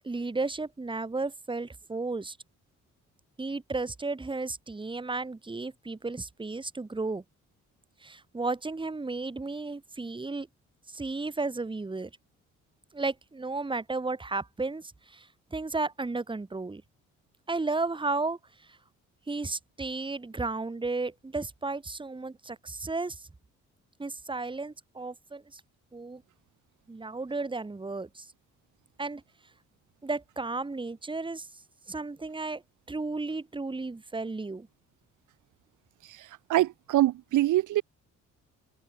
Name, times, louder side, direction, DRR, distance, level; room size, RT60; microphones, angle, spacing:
voice 1, 0.0-2.4 3.4-7.2 8.0-10.5 10.9-12.1 12.9-16.8 17.5-18.8 19.3-23.3 24.0-25.6 25.9-26.2 26.9-28.3 29.0-29.2 30.0-31.5 31.9-32.6 32.9-34.7, right 3 dB, 15° right, 1.8 m, -33 dB
voice 2, 36.0-37.8, right 15 dB, 80° right, 1.6 m, -25 dB
cardioid pair, 90°, 30 cm